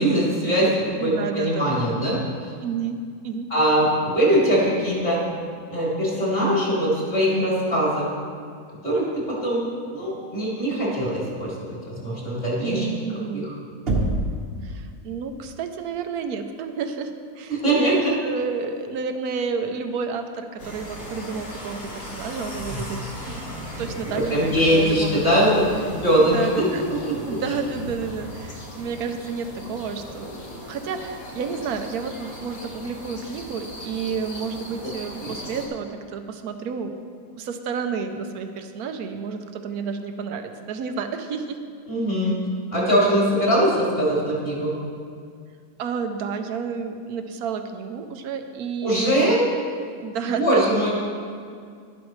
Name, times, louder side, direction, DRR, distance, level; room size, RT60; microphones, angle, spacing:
voice 1, 0.0-2.5 3.5-5.2 5.7-8.1 8.8-9.6 9.9-12.9 13.3-13.5 17.5-18.1 22.7-22.8 24.3-25.5 25.9-26.7 27.0-27.4 35.2-35.3 41.9-42.3 42.7-44.7 48.8-49.4 50.3-50.9, equal, 35° left, -7 dB, 3.4 m, -22 dB
voice 2, 1.0-2.0 2.6-3.0 3.2-3.5 12.6-13.4 14.6-25.6 26.2-26.8 27.3-30.4 30.7-37.0 37.4-41.6 45.8-49.5 50.0-50.6, right 5 dB, 70° right, 7 dB, 1.2 m, -30 dB
Knock, 13.9-14.5, right 1 dB, 40° right, 1.2 m, -23 dB
sound 1, 20.6-35.7, equal, 55° left, 1.9 m, -37 dB
11.5 x 11.0 x 3.2 m, 2.2 s
omnidirectional pair, 1.7 m